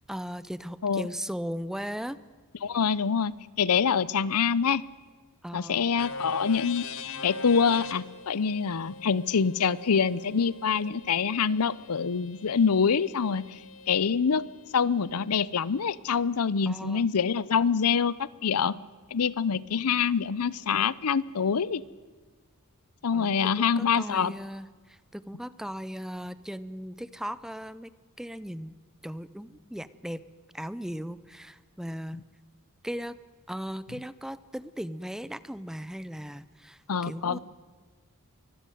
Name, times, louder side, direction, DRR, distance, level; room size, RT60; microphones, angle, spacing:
voice 1, 0.1-2.2 5.4-5.8 16.7-17.1 23.1-27.9 28.2-28.7 29.0-30.2 30.5-32.2 32.8-33.2 33.5-37.4, equal, ahead, 16 dB, 0.6 m, -37 dB
voice 2, 2.6-4.8 5.5-6.8 7.2-13.6 13.9-14.5 14.7-18.8 19.1-21.8 23.0-24.3 36.9-37.4, left 6 dB, 85° left, 20 dB, 0.6 m, -25 dB
sound 1, 6.0-13.9, left 4 dB, 65° left, 1.7 m, -41 dB
23.5 x 15.0 x 9.2 m, 1.4 s
head